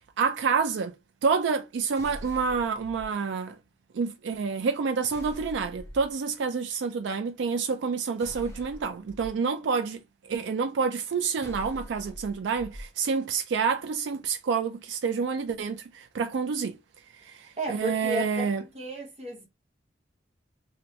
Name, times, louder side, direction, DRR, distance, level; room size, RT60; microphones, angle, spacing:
voice 1, 0.2-0.9 1.2-3.6 3.9-10.0 10.3-16.7 17.2-18.6, right 5 dB, 75° right, 0.4 m, -28 dB
sound 1, 1.9-3.1 5.1-6.1 8.2-9.3 11.4-12.9, equal, 15° left, 0.4 m, -44 dB
voice 2, 17.6-18.4 18.7-19.5, right 2 dB, 35° right, 1.0 m, -32 dB
3.2 x 2.6 x 2.8 m
head